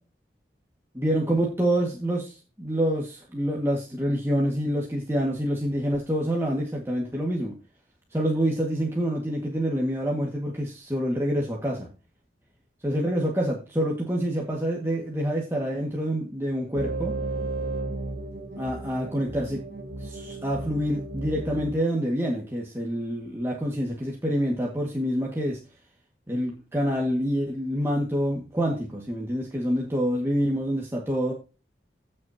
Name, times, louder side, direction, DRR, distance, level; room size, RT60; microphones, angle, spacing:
voice 1, 0.9-7.5 8.1-11.9 12.8-17.1 18.6-19.6 20.0-25.6 26.3-31.3, equal, 15° right, -3 dB, 1.9 m, -27 dB
sound 1, 16.7-21.7, right 2 dB, 55° right, 1.7 m, -34 dB
15.5 x 6.5 x 2.9 m, 0.32 s
head